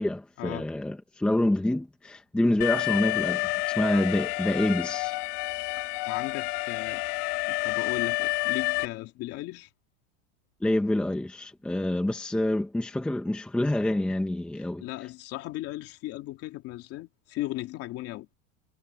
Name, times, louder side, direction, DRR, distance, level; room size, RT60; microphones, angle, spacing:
voice 1, 0.0-5.1 10.6-14.8, left 1 dB, 5° left, 0.8 m, -27 dB
Alarm, 2.6-8.9, left 23 dB, 55° left, 2.5 m, -29 dB
voice 2, 5.7-7.0 7.5-9.7 14.5-18.3, left 16 dB, 40° left, 3.1 m, -37 dB
supercardioid pair, 170°, 38 cm